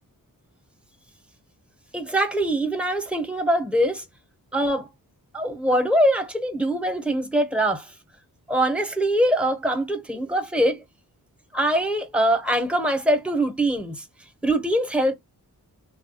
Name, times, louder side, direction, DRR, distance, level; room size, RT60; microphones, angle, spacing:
voice 1, 1.9-4.0 4.5-4.9 5.3-7.8 8.5-10.8 11.5-14.0 14.4-15.1, right 1 dB, 5° right, 0.6 m, -23 dB
3.3 x 2.3 x 2.7 m
wide cardioid pair, 105°, 37 cm